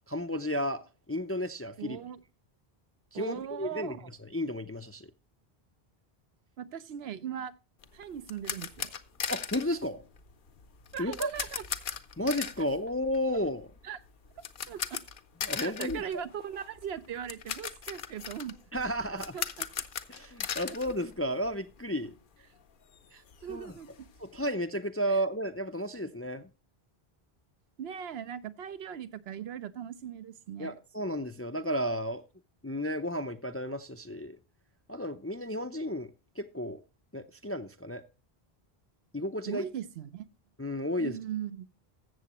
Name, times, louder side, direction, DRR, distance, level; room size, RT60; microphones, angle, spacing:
voice 1, 0.1-0.8 1.1-2.0 3.1-3.9 4.2-5.1 9.3-10.0 11.0-11.3 12.2-13.7 15.4-16.2 18.7-19.4 20.1-22.1 23.5-23.7 24.2-26.5 30.6-32.2 32.6-34.4 34.9-36.1 36.4-36.8 37.1-38.0 39.1-39.6 40.6-41.1, equal, 20° left, 0.4 m, -33 dB
voice 2, 1.8-2.2 3.1-4.1 6.6-7.5 7.9-8.9 10.9-11.6 13.8-14.0 14.4-15.0 15.6-18.5 19.3-19.7 23.1-24.1 25.1-25.2 27.8-30.8 39.5-40.3 41.0-41.8, right 9 dB, 75° right, 0.9 m, -39 dB
sound 1, 7.8-21.8 22.0-22.2 22.6-22.7 22.9-24.5, left 7 dB, 60° left, 0.8 m, -39 dB
14.0 x 7.6 x 3.0 m
omnidirectional pair, 1.0 m